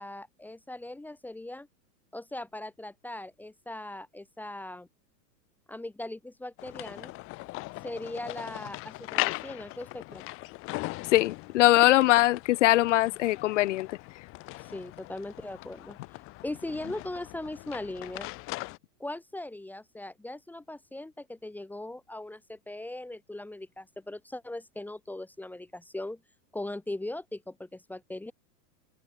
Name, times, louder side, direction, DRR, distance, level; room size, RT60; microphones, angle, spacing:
voice 1, 0.0-1.7 2.1-4.9 5.7-7.1 7.8-10.3 14.6-16.0 16.4-18.3 19.0-26.2 26.5-28.3, left 1 dB, 5° left, 2.2 m, -39 dB
sound 1, 6.6-18.8, left 23 dB, 25° left, 1.4 m, -39 dB
voice 2, 11.1-13.9, left 16 dB, 45° left, 0.8 m, -22 dB
open air
supercardioid pair, 165°, 49 cm